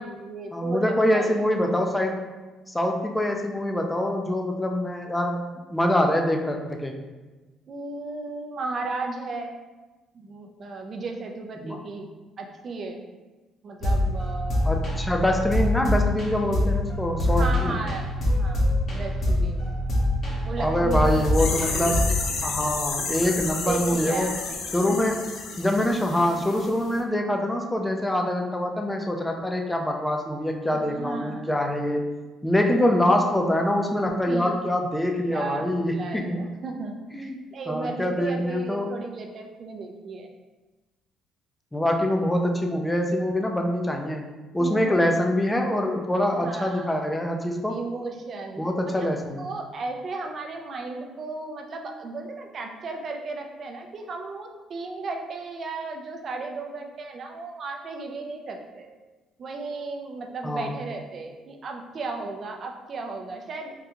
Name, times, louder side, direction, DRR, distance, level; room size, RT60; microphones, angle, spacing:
voice 1, 0.0-1.3 7.7-9.5 10.1-12.1 12.4-13.0 13.6-14.7 15.7-16.0 17.3-18.1 18.3-19.7 20.4-22.0 23.7-24.6 24.9-25.0 30.7-31.5 34.3-34.6 35.3-40.3 44.6-44.9 46.1-46.9 47.7-48.6 49.0-49.1 49.4-58.9 59.4-63.7, right 3 dB, 50° right, 3 dB, 0.4 m, -35 dB
voice 2, 0.5-2.2 2.7-5.4 5.7-6.9 11.6-11.8 14.6-17.8 20.6-22.1 22.4-24.4 24.7-25.3 25.6-32.0 32.4-36.4 37.1-37.4 37.7-38.9 41.7-44.2 44.5-47.8 48.6-49.4 60.4-60.7, left 1 dB, 10° left, 3 dB, 0.4 m, -24 dB
sound 1, 13.8-22.2, left 1 dB, 50° left, 0.9 m, -25 dB
sound 2, 21.0-26.7 26.9-27.0, left 4 dB, 70° left, 0.5 m, -31 dB
3.7 x 2.2 x 2.9 m, 1.2 s
cardioid pair, 90°, 0 cm